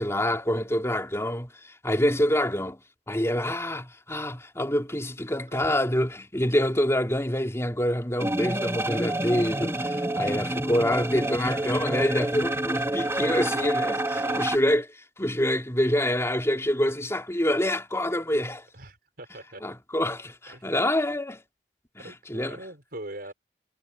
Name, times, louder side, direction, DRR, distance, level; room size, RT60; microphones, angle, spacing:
voice 1, 0.0-1.5 1.8-2.8 3.1-14.8 15.2-18.6 19.6-21.4 21.9-22.6, left 1 dB, 15° left, 3.1 m, -26 dB
sound 1, 8.2-14.6, right 1 dB, 15° right, 2.1 m, -28 dB
voice 2, 14.1-14.5 18.7-19.6 20.5-20.6 22.0-23.3, right 1 dB, 60° right, 5.3 m, -42 dB
head